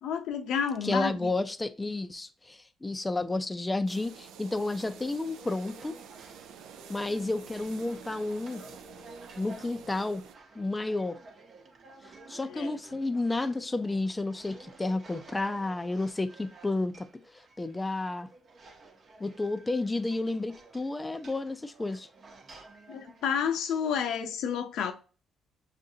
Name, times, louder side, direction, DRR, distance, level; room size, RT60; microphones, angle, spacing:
voice 1, 0.0-1.3 12.5-12.8 22.9-24.9, left 7 dB, 80° left, 0.6 m, -30 dB
voice 2, 0.8-5.9 6.9-8.6 9.4-10.2 10.6-11.2 12.3-17.1 17.3-18.3 19.2-22.1, left 2 dB, 15° left, 0.4 m, -31 dB
sound 1, 3.9-10.3, right 7 dB, 90° right, 0.4 m, -49 dB
sound 2, 4.6-24.3, right 3 dB, 50° right, 0.9 m, -53 dB
6.5 x 2.5 x 2.7 m
cardioid pair, 90°, 0 cm